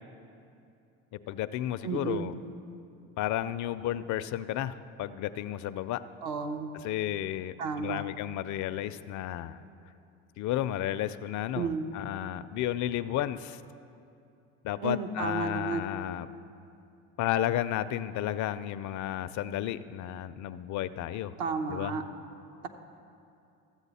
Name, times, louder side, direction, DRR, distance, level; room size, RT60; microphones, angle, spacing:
voice 1, 1.3-2.3 3.2-6.0 6.8-9.6 10.4-13.6 14.6-16.3 17.2-21.3 21.7-22.0, left 12 dB, 50° left, 14 dB, 0.5 m, -32 dB
voice 2, 1.8-2.3 6.2-6.7 7.6-8.0 11.6-11.9 14.8-15.9 21.4-22.1, right 4 dB, 65° right, 5 dB, 1.0 m, -32 dB
14.0 x 8.0 x 4.1 m, 2.6 s
hypercardioid pair, 75°, 37 cm